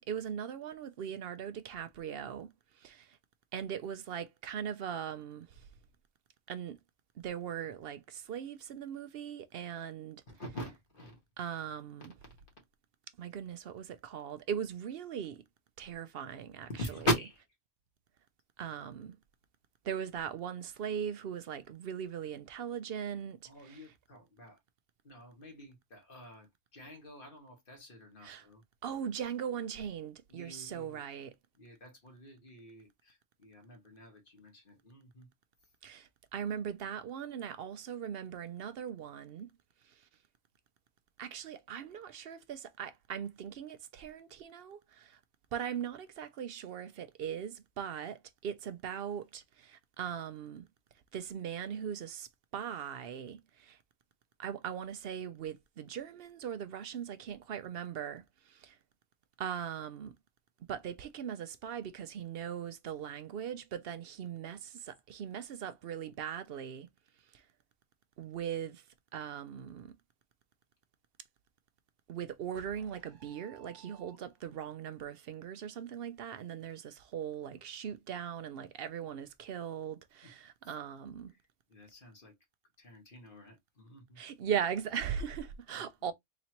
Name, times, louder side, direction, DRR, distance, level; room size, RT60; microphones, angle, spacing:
voice 1, 0.0-2.5 2.7-3.2 3.5-5.7 6.5-6.8 7.2-10.2 11.4-12.1 13.2-15.4 15.8-16.7 18.6-19.1 19.8-23.9 28.2-28.5 28.8-31.3 35.8-39.5 39.8-40.1 41.2-45.2 45.5-50.7 51.1-53.8 54.4-58.8 59.4-60.1 60.7-66.9 67.3-67.5 68.2-68.8 69.1-69.9 72.1-81.3 84.2-86.1, right 8 dB, 60° right, 0.7 m, -40 dB
voice 2, 10.3-11.2 16.7-17.4 23.4-24.6 25.0-28.6 30.3-31.0 31.6-35.3 81.7-82.3 82.8-84.2, equal, 45° left, 1.7 m, -41 dB
sound 1, 72.5-74.7, right 7 dB, 20° right, 1.0 m, -58 dB
4.1 x 2.9 x 2.9 m
omnidirectional pair, 1.2 m